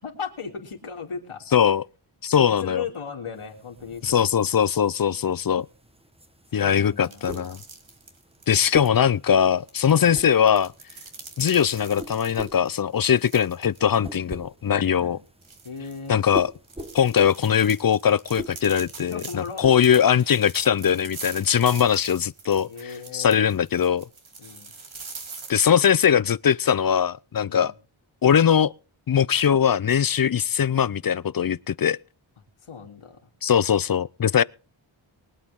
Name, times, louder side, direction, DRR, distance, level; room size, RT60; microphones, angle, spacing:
voice 1, 0.0-1.6 2.4-4.4 6.5-7.5 9.9-10.2 15.0-15.2 15.6-16.2 19.0-19.6 22.6-23.4 24.4-24.7 27.5-27.7 32.6-33.3, left 6 dB, 85° left, 3.3 m, -37 dB
voice 2, 1.5-1.8 2.2-2.8 4.0-5.7 6.5-7.6 8.5-10.7 11.4-15.2 16.1-16.5 16.9-24.0 25.5-27.7 28.2-28.7 29.1-32.0 33.4-34.4, left 8 dB, 45° left, 0.5 m, -21 dB
sound 1, 3.3-20.5, equal, 10° right, 1.2 m, -44 dB
sound 2, 7.0-8.9 9.7-13.8 14.2-14.3 14.8-14.9 15.4-25.6, right 4 dB, 70° right, 2.8 m, -43 dB
23.0 x 8.6 x 3.7 m
wide cardioid pair, 80°, 49 cm